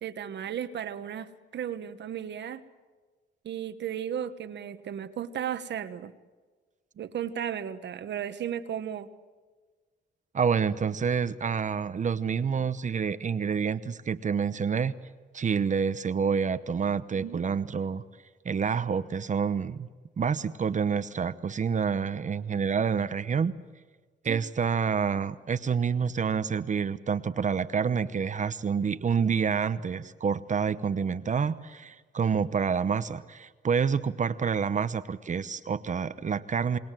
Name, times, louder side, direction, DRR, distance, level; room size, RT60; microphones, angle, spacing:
voice 1, 0.0-2.6 3.4-6.1 7.0-9.1 17.1-17.4 24.3-24.4, right 9 dB, 70° right, 11 dB, 1.3 m, -35 dB
voice 2, 10.3-14.9 15.3-18.0 18.4-19.9 20.2-23.5 24.2-36.8, right 6 dB, 40° right, 13 dB, 0.9 m, -28 dB
28.0 x 21.0 x 7.6 m, 1.4 s
cardioid pair, 110°, 19 cm